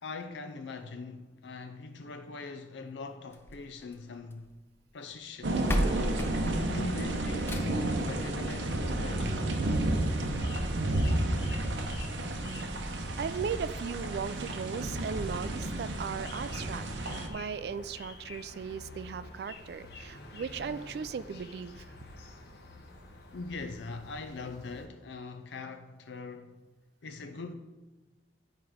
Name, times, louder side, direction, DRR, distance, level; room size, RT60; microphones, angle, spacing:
voice 1, 0.0-4.5 4.9-5.6 6.6-9.4 22.0-22.3 23.3-26.6 27.0-27.6, left 3 dB, 80° left, 0.5 m, -41 dB
sound 1, 3.3-4.5 5.3-5.4 5.7-8.0 9.3-9.4 9.9-10.0 10.2-10.3 10.9-11.0, equal, 15° left, 0.5 m, -34 dB
sound 2, 5.4-17.3, right 1 dB, 85° right, 0.8 m, -31 dB
sound 3, 9.2-24.9, left 2 dB, 65° left, 1.0 m, -50 dB
voice 2, 13.2-21.9, right 6 dB, 60° right, 0.3 m, -37 dB
10.5 x 4.6 x 4.9 m
head